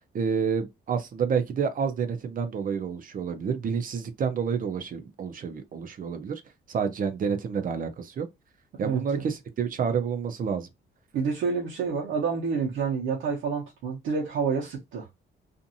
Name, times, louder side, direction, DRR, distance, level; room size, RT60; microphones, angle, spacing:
voice 1, 0.1-6.4 6.7-8.3 8.8-10.7, right 6 dB, 45° right, 0.6 m, -29 dB
voice 2, 8.8-9.2 11.1-15.1, right 5 dB, 80° right, 1.0 m, -28 dB
2.6 x 2.5 x 2.7 m
cardioid pair, 110°, 20 cm